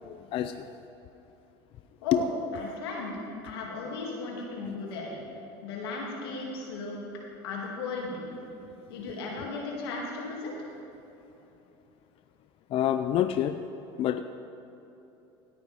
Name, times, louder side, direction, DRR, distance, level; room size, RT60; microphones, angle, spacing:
voice 1, 0.1-0.7 2.1-2.2 4.6-4.8 12.7-13.6 14.0-14.2, left 11 dB, 45° left, 9 dB, 0.4 m, -27 dB
voice 2, 2.5-3.2 3.4-5.2 5.6-7.0 7.4-8.2 8.9-10.5, left 3 dB, 90° left, -2 dB, 2.5 m, -35 dB
17.5 x 9.2 x 3.6 m, 3.0 s
supercardioid pair, 100°, 13 cm